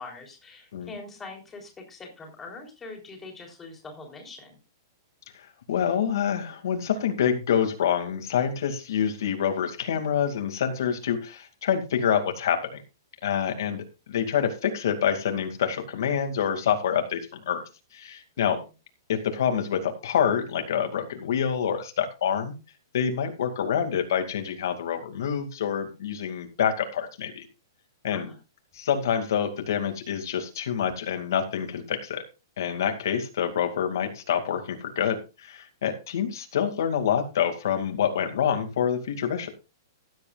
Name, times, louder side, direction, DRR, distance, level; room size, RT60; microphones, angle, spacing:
voice 1, 0.0-4.6 28.1-28.4, left 3 dB, 10° left, 1 dB, 3.7 m, -43 dB
voice 2, 5.3-12.8 13.2-17.6 17.9-18.6 19.1-22.5 22.9-27.4 28.0-28.3 28.7-32.2 32.6-39.5, left 8 dB, 65° left, 5 dB, 2.4 m, -27 dB
16.0 x 10.5 x 2.5 m, 0.29 s
hypercardioid pair, 170°, 2 cm